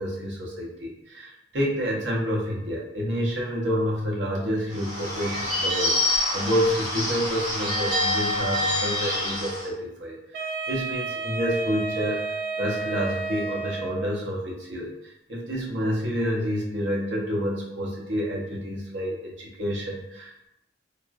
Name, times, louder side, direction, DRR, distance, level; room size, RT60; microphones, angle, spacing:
voice 1, 0.0-12.3 12.6-20.5, equal, 75° right, -3 dB, 0.7 m, -29 dB
Bird / Bell, 4.7-9.7, left 1 dB, 20° right, 0.9 m, -26 dB
Wind instrument woodwind instrument, 10.3-14.2, right 4 dB, 50° right, 0.3 m, -31 dB
3.5 x 2.1 x 2.4 m, 0.82 s
head